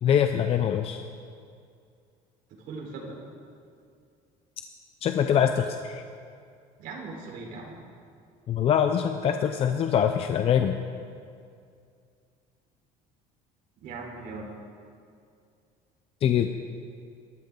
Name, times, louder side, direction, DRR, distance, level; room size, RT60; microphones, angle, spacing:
voice 1, 0.0-1.0 5.0-6.0 8.5-10.8 16.2-16.5, left 8 dB, 40° left, 6 dB, 0.6 m, -24 dB
voice 2, 2.5-3.2 6.8-7.7 13.8-14.5, right 3 dB, 70° right, -2 dB, 4.3 m, -39 dB
26.0 x 13.5 x 3.9 m, 2.3 s
cardioid pair, 155°, 16 cm